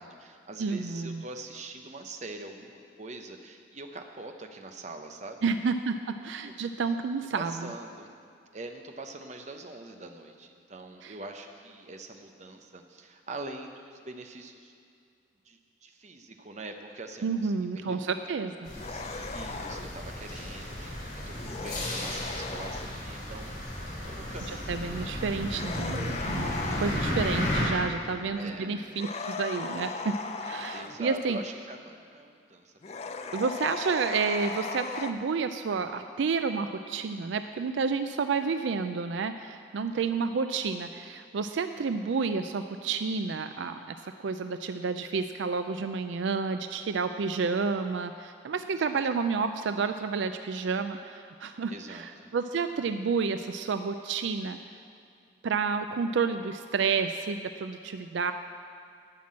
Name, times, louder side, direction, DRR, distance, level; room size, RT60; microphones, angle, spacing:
voice 1, 0.0-5.5 6.1-6.5 7.4-8.1 8.5-14.7 15.4-18.2 18.8-25.2 28.3-28.9 30.7-33.0 39.9-40.1 47.1-47.6 48.8-49.0 51.7-52.3, right 2 dB, 35° right, 4 dB, 0.8 m, -44 dB
voice 2, 0.6-1.2 5.4-7.5 11.0-11.1 17.2-18.7 24.7-31.4 33.3-44.0 44.2-52.0 52.3-54.6 55.4-58.3, right 5 dB, 75° right, 9 dB, 0.4 m, -30 dB
sound 1, 18.6-27.6, left 1 dB, 50° left, 3.2 m, -34 dB
sound 2, 18.7-19.9 21.3-22.9 25.4-27.1 28.9-31.0 32.8-35.1, left 4 dB, 35° left, 0.5 m, -37 dB
11.5 x 6.0 x 8.5 m, 2.4 s
head